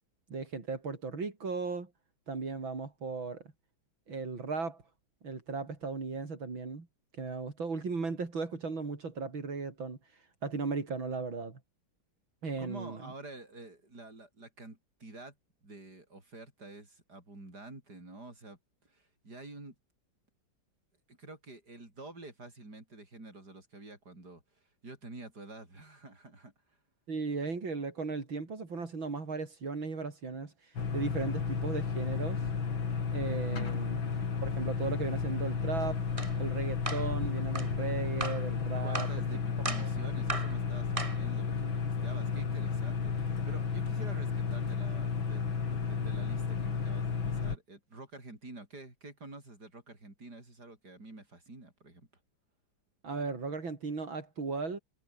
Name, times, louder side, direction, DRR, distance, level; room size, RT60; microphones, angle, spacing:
voice 1, 0.3-1.9 2.3-3.4 4.1-4.8 5.2-6.9 7.2-11.6 12.4-13.1 27.1-32.5 33.1-34.0 34.4-36.0 36.4-39.1 39.8-39.9 41.6-41.7 53.0-54.8, right 4 dB, 80° right, 4.8 m, -36 dB
voice 2, 12.6-15.4 15.6-19.8 21.1-24.4 24.8-26.5 33.5-33.9 38.8-52.1, right 2 dB, 55° right, 7.5 m, -48 dB
sound 1, 30.8-47.6, left 5 dB, 85° left, 3.5 m, -33 dB
sound 2, 36.2-36.3 36.9-37.1 37.5-37.7 38.2-38.5 38.9-39.2 39.6-39.9 40.3-40.6 41.0-41.2, right 2 dB, 15° right, 2.2 m, -36 dB
omnidirectional pair, 2.1 m